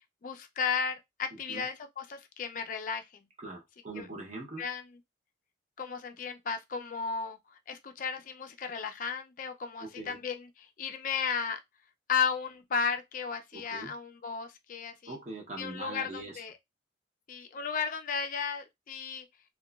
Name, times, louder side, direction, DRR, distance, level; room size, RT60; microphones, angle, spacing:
voice 1, 0.2-3.1 4.0-4.1 4.6-4.8 5.8-7.4 7.7-10.5 10.8-11.6 12.1-15.1 15.6-16.5 17.3-19.3, left 6 dB, 45° left, 0.4 m, -34 dB
voice 2, 1.3-1.7 3.4-4.8 9.8-10.2 13.5-13.9 15.1-16.4, right 2 dB, 40° right, 0.7 m, -42 dB
2.9 x 2.2 x 2.2 m
head